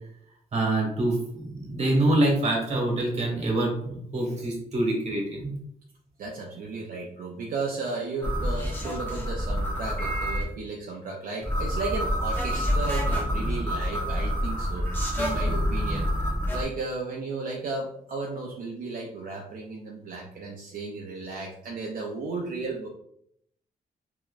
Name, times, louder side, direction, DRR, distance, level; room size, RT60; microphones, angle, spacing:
voice 1, 0.5-5.6, right 1 dB, 50° right, -1 dB, 1.4 m, -25 dB
voice 2, 6.2-16.1 16.5-22.9, right 3 dB, 75° right, -1 dB, 0.6 m, -34 dB
sound 1, 8.2-10.4 11.4-16.6, equal, 15° left, 0.9 m, -27 dB
3.8 x 2.9 x 2.4 m, 0.71 s
wide cardioid pair, 130°, 15 cm